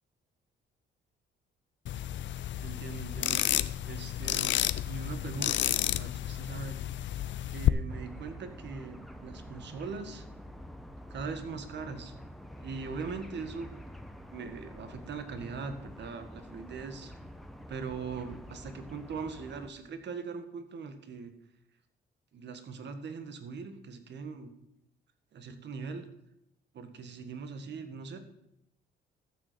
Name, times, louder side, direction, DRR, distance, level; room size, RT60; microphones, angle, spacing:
sound 1, 1.9-7.7, left 12 dB, 70° left, 0.6 m, -31 dB
voice 1, 2.6-3.4 3.8-4.5 4.8-6.8 7.5-10.3 11.1-12.1 12.6-13.7 14.3-17.1 17.7-21.3 22.3-24.5 25.3-26.1 26.7-28.2, right 5 dB, 60° right, 8 dB, 1.6 m, -41 dB
sound 2, 7.9-19.7, equal, ahead, 1.1 m, -47 dB
13.5 x 6.5 x 6.9 m, 0.80 s
cardioid pair, 90°, 20 cm